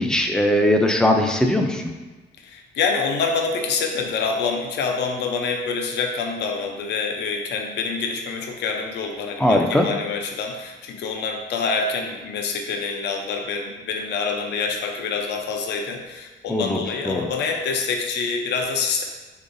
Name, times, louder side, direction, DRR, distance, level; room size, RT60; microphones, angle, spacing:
voice 1, 0.0-1.8 9.4-9.9 16.5-16.8 17.1-17.3, left 1 dB, 5° left, 3 dB, 0.3 m, -19 dB
voice 2, 2.4-19.0, left 5 dB, 65° left, 3 dB, 0.5 m, -26 dB
5.3 x 3.8 x 2.6 m, 1.2 s
cardioid pair, 165°, 19 cm